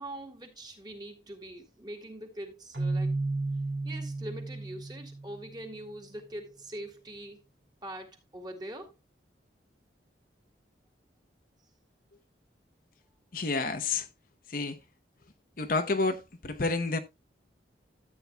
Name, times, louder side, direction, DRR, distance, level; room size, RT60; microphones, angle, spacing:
voice 1, 0.0-3.1 3.8-7.4 7.8-8.9, right 1 dB, 25° right, 2.1 m, -43 dB
Keyboard (musical), 2.7-5.6, right 2 dB, 70° right, 2.6 m, -33 dB
voice 2, 13.3-14.1 14.5-14.8 15.6-17.0, left 3 dB, 50° left, 0.9 m, -29 dB
13.5 x 8.6 x 2.3 m
head